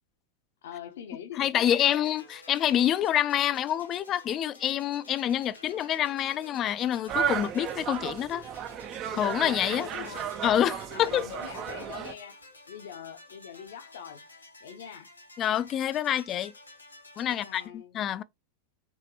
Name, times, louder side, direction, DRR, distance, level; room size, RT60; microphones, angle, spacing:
voice 1, 0.6-2.0 9.7-10.4 10.9-12.4 12.7-14.2 14.6-15.1 17.2-18.0, left 9 dB, 60° left, 0.8 m, -43 dB
voice 2, 1.3-8.5 9.1-9.9 10.4-11.3 15.4-16.5 17.2-18.2, left 11 dB, 30° left, 0.4 m, -27 dB
sound 1, 1.7-17.7, left 2 dB, 85° left, 1.6 m, -52 dB
sound 2, 7.1-12.1, right 9 dB, 35° right, 0.5 m, -34 dB
6.1 x 2.9 x 2.9 m
figure-of-eight pair, 90°, 0 cm